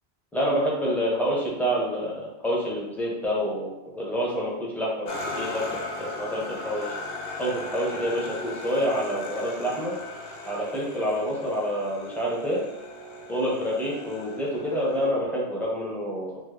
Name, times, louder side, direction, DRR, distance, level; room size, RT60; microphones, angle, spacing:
voice 1, 0.3-5.1 5.4-7.0 7.4-10.0 10.5-12.6 13.3-16.4, equal, ahead, -5 dB, 0.6 m, -27 dB
sound 1, 5.0-15.1, left 2 dB, 65° left, 0.8 m, -37 dB
3.5 x 2.1 x 3.2 m, 0.91 s
omnidirectional pair, 1.1 m